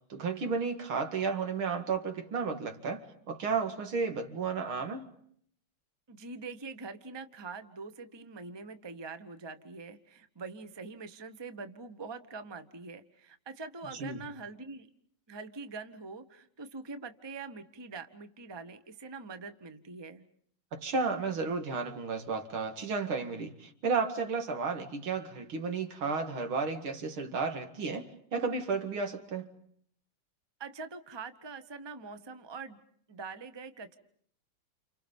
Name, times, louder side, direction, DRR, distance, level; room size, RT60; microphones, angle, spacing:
voice 1, 0.1-5.1 13.9-14.2 20.7-29.5, right 4 dB, 85° right, 2.9 m, -33 dB
voice 2, 6.1-14.9 15.3-20.2 30.6-32.8 33.1-34.0, right 4 dB, 20° right, 0.9 m, -44 dB
29.5 x 29.0 x 5.4 m
omnidirectional pair, 2.2 m